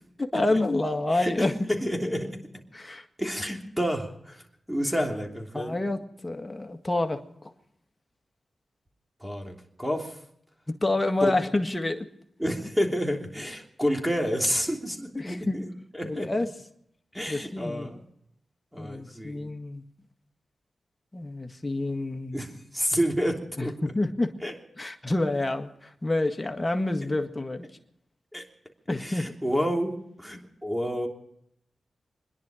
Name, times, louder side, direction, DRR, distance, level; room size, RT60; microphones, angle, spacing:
voice 1, 0.2-1.7 2.7-3.1 5.5-7.2 10.7-12.1 15.2-15.6 16.0-16.5 17.3-17.9 18.8-19.8 21.1-22.4 23.6-24.4 24.8-27.7 28.9-29.3, left 2 dB, 25° left, 5 dB, 1.8 m, -28 dB
voice 2, 1.1-2.4 3.2-4.4 4.7-5.8 9.2-10.1 11.2-11.3 12.4-16.3 17.1-18.0 18.7-19.5 22.3-23.7 24.4-24.5 28.3-28.4 29.0-31.1, equal, 5° right, 2 dB, 3.2 m, -29 dB
27.0 x 10.5 x 5.0 m, 0.74 s
cardioid pair, 55°, 0 cm